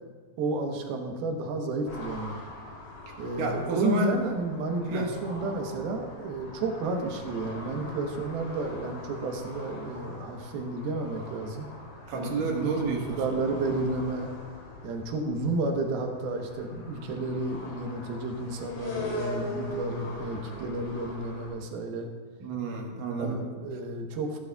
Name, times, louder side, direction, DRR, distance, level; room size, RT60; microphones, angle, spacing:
voice 1, 0.4-2.4 3.2-11.7 12.1-12.7 13.1-14.3 14.8-22.1 23.2-24.4, right 3 dB, 85° right, 3 dB, 3.0 m, -31 dB
sound 1, 1.9-21.5, left 1 dB, 55° left, 4.1 m, -42 dB
voice 2, 3.4-4.1 4.8-5.1 12.1-13.2 22.4-23.4, right 2 dB, 65° right, 0 dB, 2.9 m, -29 dB
16.0 x 11.5 x 2.3 m, 1.5 s
omnidirectional pair, 4.3 m